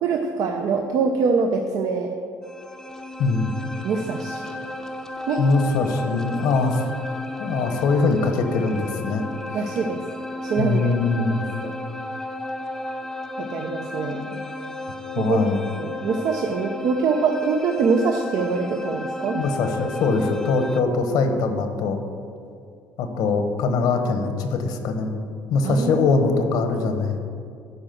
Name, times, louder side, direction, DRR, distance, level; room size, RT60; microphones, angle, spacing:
voice 1, 0.0-2.1 3.8-4.4 5.3-5.4 9.5-10.0 10.4-11.2 11.6-11.7 13.4-14.4 15.2-15.4 15.8-19.4 20.8-21.2 25.6-26.1, right 5 dB, 60° right, 3 dB, 0.8 m, -24 dB
sound 1, 2.4-20.8, left 2 dB, 5° left, 0.7 m, -33 dB
voice 2, 3.2-3.5 5.4-6.9 7.4-9.2 9.5-9.7 10.6-11.4 15.1-15.6 19.3-22.0 23.0-25.2 25.5-27.2, left 4 dB, 70° left, 6 dB, 1.2 m, -22 dB
12.0 x 5.0 x 7.8 m, 2.3 s
cardioid pair, 130°, 7 cm